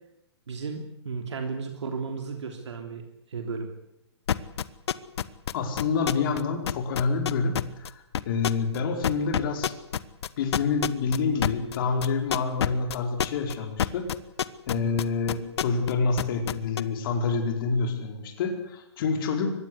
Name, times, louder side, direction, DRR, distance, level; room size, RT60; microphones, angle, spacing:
voice 1, 0.5-3.0 3.3-3.7, right 4 dB, 80° right, 4 dB, 3.4 m, -34 dB
sound 1, 4.3-6.4 6.7-8.8 9.0-15.9 16.2-16.8, left 9 dB, 65° left, 1.3 m, -26 dB
voice 2, 5.5-9.7 10.4-14.1 14.7-19.5, left 4 dB, 50° left, 4 dB, 4.9 m, -27 dB
24.0 x 19.5 x 8.3 m, 0.81 s
hypercardioid pair, 140°, 15 cm